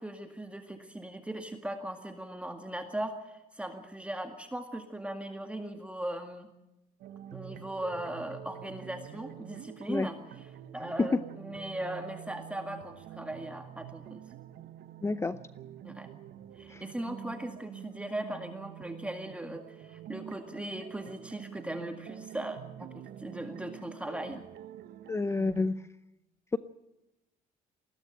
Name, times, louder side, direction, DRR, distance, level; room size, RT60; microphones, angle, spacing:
voice 1, 0.0-6.5 7.3-10.2 10.7-14.2 15.8-16.1 16.6-24.4, right 1 dB, 5° right, 5 dB, 2.0 m, -39 dB
sound 1, 7.0-25.7, right 11 dB, 70° right, 1.4 m, -47 dB
voice 2, 15.0-15.4 16.7-16.8 25.1-25.8, left 3 dB, 15° left, 14 dB, 0.7 m, -29 dB
20.5 x 17.0 x 9.1 m, 0.94 s
cardioid pair, 110°, 17 cm